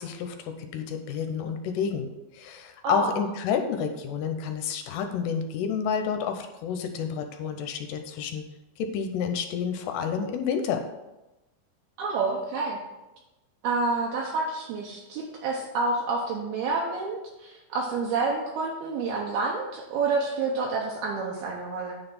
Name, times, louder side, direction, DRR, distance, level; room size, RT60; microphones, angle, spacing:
voice 1, 0.0-2.1 2.3-8.4 8.8-10.8, left 7 dB, 80° left, 6 dB, 2.7 m, -30 dB
voice 2, 2.8-3.2 12.0-12.8 13.6-21.9, right 3 dB, 75° right, -1 dB, 2.5 m, -28 dB
9.6 x 4.0 x 5.4 m, 1.0 s
omnidirectional pair, 5.1 m